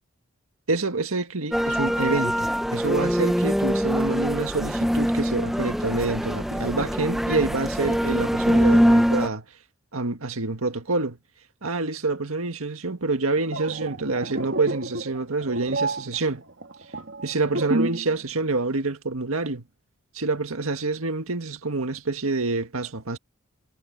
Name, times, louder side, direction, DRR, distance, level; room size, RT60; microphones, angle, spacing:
voice 1, 0.7-9.5 9.9-11.2 11.6-16.4 17.2-19.7 20.1-23.2, right 3 dB, 85° right, 1.8 m, -27 dB
sound 1, 1.5-9.3, equal, ahead, 0.8 m, -23 dB
sound 2, 13.4-18.2 18.4-18.7, right 2 dB, 65° right, 2.3 m, -30 dB
head